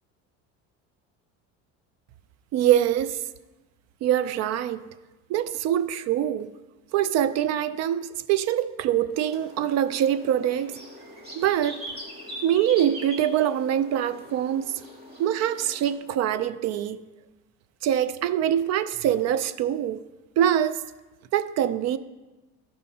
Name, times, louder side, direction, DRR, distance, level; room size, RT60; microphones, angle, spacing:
voice 1, 2.5-3.2 4.0-4.9 5.3-6.5 6.9-10.8 11.3-11.8 12.4-14.7 15.2-17.0 17.8-20.0 20.4-20.8 21.3-22.0, right 10 dB, 55° right, 0.4 m, -24 dB
sound 1, 9.1-16.0, equal, 30° right, 2.0 m, -42 dB
13.5 x 5.5 x 2.8 m
cardioid pair, 115°, 32 cm